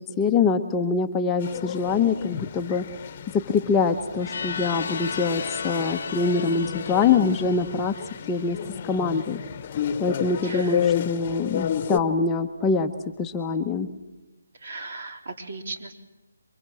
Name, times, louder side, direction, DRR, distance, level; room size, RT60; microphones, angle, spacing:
voice 1, 0.2-2.8 3.3-8.0 8.3-8.6 8.8-9.4 10.0-13.9, left 5 dB, 10° left, 3 dB, 1.0 m, -24 dB
sound 1, 1.4-12.0, left 9 dB, 30° left, 1.2 m, -31 dB
sound 2, 4.2-9.0, left 6 dB, 50° left, 0.8 m, -35 dB
voice 2, 10.4-10.8 14.5-15.9, right 3 dB, 55° right, 5 dB, 3.8 m, -37 dB
28.0 x 24.0 x 7.7 m, 1.1 s
figure-of-eight pair, 160°, 0 cm